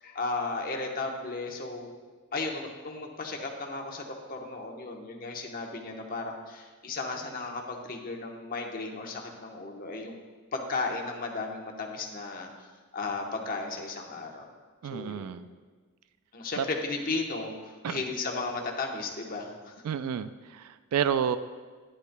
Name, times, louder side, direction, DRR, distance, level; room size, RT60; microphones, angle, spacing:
voice 1, 0.0-1.9 2.3-10.2 10.5-12.5 12.9-14.5 14.9-15.3 16.3-19.7, left 3 dB, 40° left, 1 dB, 1.0 m, -35 dB
voice 2, 14.8-15.5 16.6-16.7 17.8-18.0 19.8-21.4, right 8 dB, 80° right, 12 dB, 0.3 m, -30 dB
10.5 x 10.0 x 2.2 m, 1.4 s
head